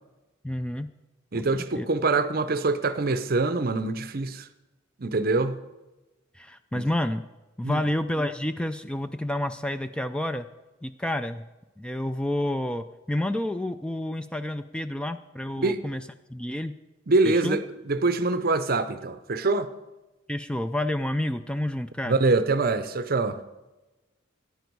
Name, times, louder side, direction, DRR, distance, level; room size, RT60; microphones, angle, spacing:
voice 1, 0.4-0.9 1.3-1.4 1.7-1.9 6.3-7.2 7.6-10.5 10.8-11.4 11.8-16.0 16.3-16.7 17.2-17.6 20.3-22.2, left 1 dB, 5° left, 0.3 m, -29 dB
voice 2, 1.3-4.5 5.0-5.6 6.7-6.9 7.6-7.8 15.6-15.8 17.1-19.7 22.1-23.4, right 3 dB, 50° right, 0.7 m, -24 dB
14.5 x 10.5 x 4.6 m
head